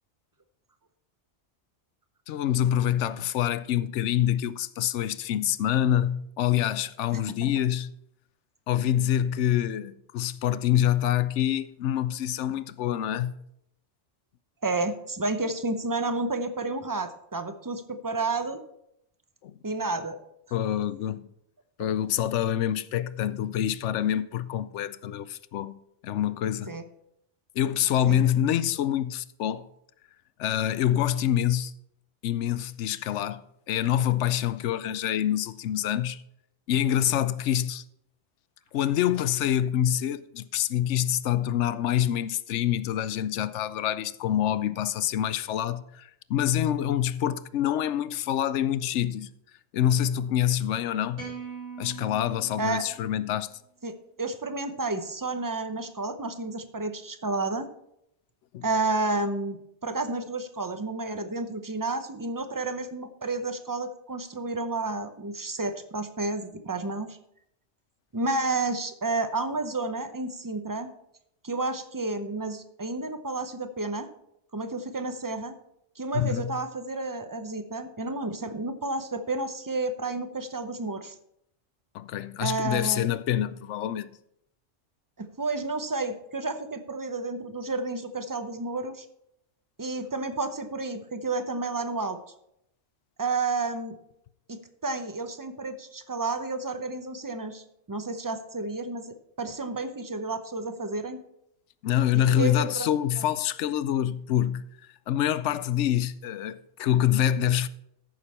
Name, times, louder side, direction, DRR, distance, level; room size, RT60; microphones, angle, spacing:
voice 1, 2.3-7.9 8.7-13.4 19.4-19.6 20.5-21.3 21.8-26.8 27.6-29.7 30.4-31.7 32.2-36.2 36.7-37.8 38.7-49.3 49.7-51.3 51.8-53.5 58.5-58.7 76.1-76.6 81.9-84.1 101.8-104.6 105.1-107.7, left 11 dB, 85° left, 0.9 m, -26 dB
voice 2, 14.6-18.6 19.6-20.2 26.7-26.8 28.1-28.2 52.6-52.8 53.8-53.9 54.2-57.7 58.6-67.2 68.1-70.9 71.4-74.1 74.5-75.5 76.0-81.1 82.4-83.1 85.2-89.1 89.8-92.2 93.2-94.0 94.5-101.2 102.4-102.9, right 3 dB, 20° right, 0.6 m, -31 dB
sound 1, 51.1-53.5, right 5 dB, 80° right, 3.8 m, -42 dB
14.5 x 6.5 x 4.2 m
omnidirectional pair, 1.2 m